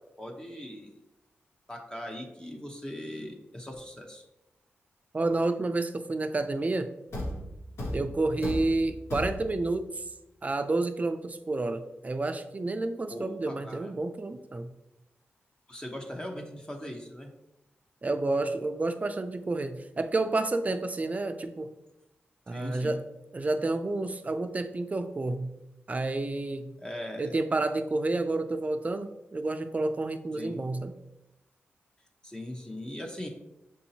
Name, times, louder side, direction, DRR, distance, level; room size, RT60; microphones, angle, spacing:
voice 1, 0.2-1.0 1.7-4.2 13.1-13.9 15.7-17.3 22.5-23.0 26.8-27.4 30.4-30.6 32.2-33.3, left 1 dB, 20° left, 2 dB, 0.7 m, -40 dB
voice 2, 5.1-6.9 7.9-10.0 10.4-14.7 18.0-21.7 22.5-23.0 23.3-25.5 25.9-26.7 27.2-30.9, right 2 dB, 35° right, 9 dB, 0.4 m, -30 dB
Thump thud, 7.1-9.8, left 1 dB, 75° left, 0.8 m, -36 dB
6.5 x 2.7 x 2.7 m, 0.90 s
cardioid pair, 60°, 4 cm